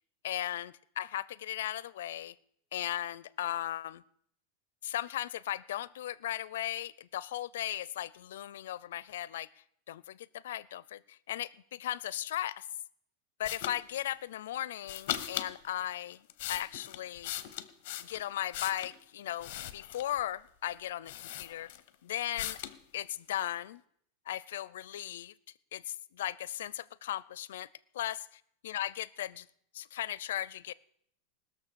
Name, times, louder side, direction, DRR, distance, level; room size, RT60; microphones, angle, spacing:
voice 1, 0.2-2.3 2.7-4.0 4.8-9.5 9.9-12.7 13.4-16.2 16.5-17.3 18.0-21.7 22.0-22.6 22.9-23.8 24.3-25.3 25.7-27.7 27.9-28.2 28.6-29.5 29.7-30.7, left 12 dB, 90° left, 20 dB, 0.5 m, -37 dB
sound 1, 13.4-13.8 14.8-15.5 16.1-19.0 19.4-20.2 20.7-20.8 21.1-21.9 22.4-22.8, left 13 dB, 50° left, 0.8 m, -39 dB
19.5 x 6.6 x 6.9 m, 0.69 s
supercardioid pair, 175°, 0 cm